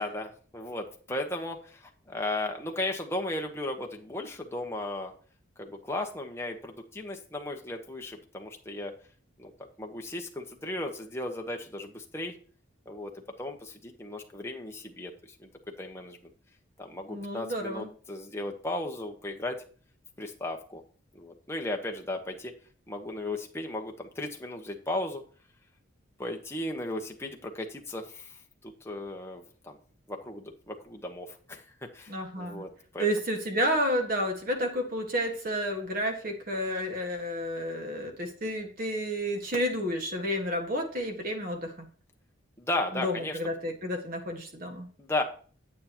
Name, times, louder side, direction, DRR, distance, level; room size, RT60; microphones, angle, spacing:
voice 1, 0.0-5.1 5.6-8.9 9.4-9.5 9.8-12.3 12.9-15.1 15.4-15.5 15.8-16.2 16.8-19.6 20.2-20.8 21.1-22.5 22.9-25.3 26.2-28.4 28.6-29.8 30.1-33.1 42.6-43.4 43.6-43.7 45.0-45.2, left 2 dB, 10° left, 2 dB, 1.1 m, -35 dB
voice 2, 17.1-17.9 32.1-32.7 33.0-41.9 42.9-44.9, equal, 45° right, 4 dB, 1.7 m, -31 dB
9.5 x 8.3 x 3.0 m, 0.42 s
head